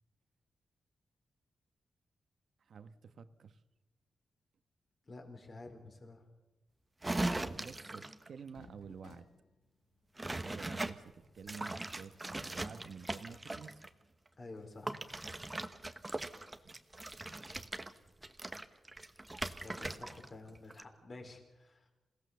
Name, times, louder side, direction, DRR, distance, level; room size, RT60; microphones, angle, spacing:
voice 1, 2.6-3.6 7.4-9.3 10.3-13.8 16.6-16.7 21.2-21.3, right 6 dB, 60° right, 11 dB, 1.2 m, -50 dB
voice 2, 5.0-6.3 14.4-15.0 19.6-21.9, left 2 dB, 35° left, 3 dB, 4.6 m, -50 dB
sound 1, 7.0-8.3 10.2-10.9 11.4-13.9 14.9-20.3 20.5-20.8, right 2 dB, 15° right, 1.1 m, -40 dB
sound 2, 8.5-13.4 13.8-13.9 14.5-14.8, left 4 dB, 70° left, 2.2 m, -63 dB
28.0 x 17.0 x 7.0 m, 1.1 s
wide cardioid pair, 155°, 0 cm